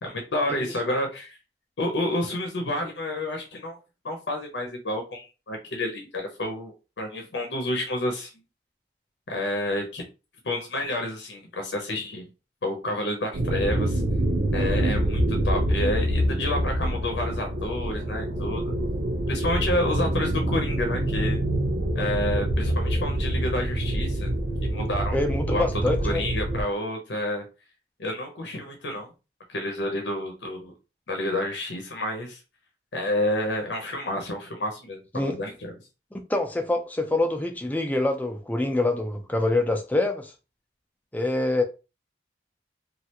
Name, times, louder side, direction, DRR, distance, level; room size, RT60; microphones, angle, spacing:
voice 1, 0.0-1.4 1.8-3.8 4.0-8.3 9.3-10.0 10.4-12.3 12.6-14.0 14.5-18.7 19.3-21.4 21.9-24.3 24.6-25.2 25.5-25.6 26.0-27.4 28.0-29.1 29.5-30.7 31.1-32.4 32.9-35.7, left 1 dB, 85° left, 0.7 m, -29 dB
sound 1, 13.3-26.6, right 1 dB, 75° right, 0.6 m, -26 dB
voice 2, 25.1-26.2 35.1-35.4 36.1-40.3 41.1-41.6, left 2 dB, 10° left, 0.4 m, -25 dB
3.2 x 2.4 x 2.9 m
head